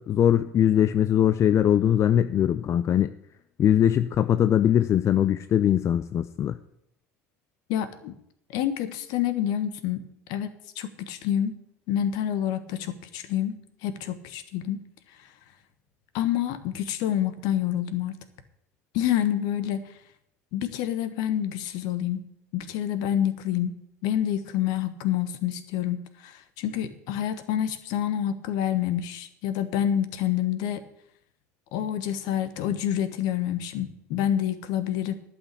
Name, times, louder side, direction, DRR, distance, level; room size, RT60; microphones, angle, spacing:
voice 1, 0.0-3.1 3.6-6.6, left 10 dB, 40° left, 13 dB, 0.5 m, -21 dB
voice 2, 7.7-8.1 8.5-11.6 11.9-14.8 16.1-18.2 18.9-19.9 20.5-22.3 22.5-23.8 24.0-30.8 31.7-35.1, left 10 dB, 60° left, 12 dB, 1.1 m, -28 dB
11.5 x 6.0 x 8.3 m, 0.76 s
hypercardioid pair, 70°, 8 cm